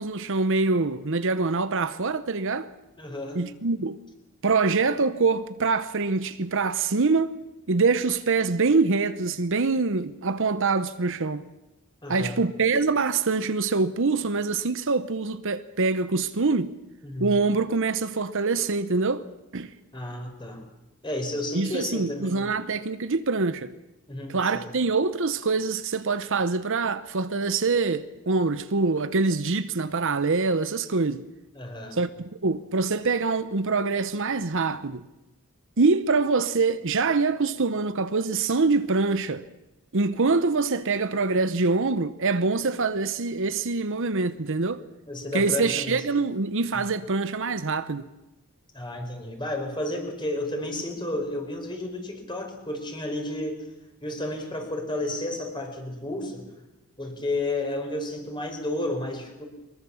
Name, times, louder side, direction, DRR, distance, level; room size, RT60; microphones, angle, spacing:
voice 1, 0.0-2.7 3.3-4.0 4.4-7.3 7.7-11.4 12.1-16.7 17.2-19.7 21.5-23.7 24.3-31.2 31.9-35.1 35.8-39.4 39.9-44.8 45.3-48.1, right 4 dB, 60° right, 0.9 m, -25 dB
voice 2, 3.0-3.4 12.0-12.4 17.0-17.4 19.9-20.6 21.0-22.5 24.1-24.6 31.5-32.0 45.1-46.0 48.7-53.6 54.0-56.5 57.0-59.5, left 1 dB, 20° left, 4.7 m, -32 dB
23.5 x 21.5 x 7.2 m
head